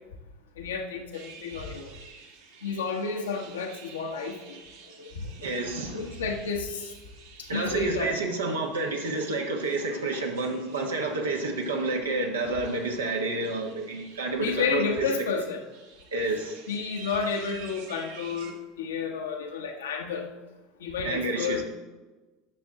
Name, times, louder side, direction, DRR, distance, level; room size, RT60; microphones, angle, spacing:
voice 1, 0.6-1.9 2.6-4.6 5.0-5.5 5.9-6.9 7.5-8.1 14.4-15.6 16.7-20.3 20.8-21.6, left 5 dB, 85° left, 2 dB, 1.2 m, -31 dB
sound 1, 1.1-18.5, right 5 dB, 70° right, 1.2 m, -51 dB
voice 2, 5.4-6.1 7.5-15.1 16.1-16.6 21.0-21.6, right 3 dB, 90° right, 1 dB, 1.2 m, -29 dB
10.5 x 6.3 x 3.7 m, 1.2 s
hypercardioid pair, 85°, 0 cm